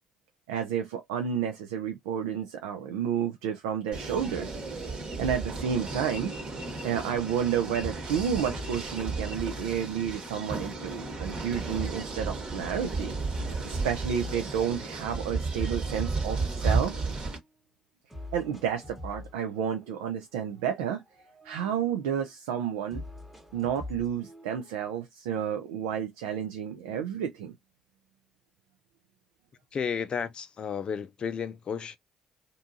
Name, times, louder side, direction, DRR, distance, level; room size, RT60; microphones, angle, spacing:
voice 1, 0.5-4.6 5.2-6.3 6.8-13.1 13.6-17.0 18.3-21.0 21.4-23.0 23.5-27.5, right 8 dB, 75° right, 0.4 m, -31 dB
sound 1, 3.9-17.4, right 3 dB, 45° right, 1.1 m, -33 dB
sound 2, 8.5-10.5 10.9-12.7 13.3-15.3 15.7-17.5 18.1-20.3 20.5-22.3 22.9-24.9, left 2 dB, 5° right, 1.0 m, -46 dB
voice 2, 29.7-32.0, left 6 dB, 45° left, 0.4 m, -32 dB
2.6 x 2.3 x 2.5 m
figure-of-eight pair, 50°, 2 cm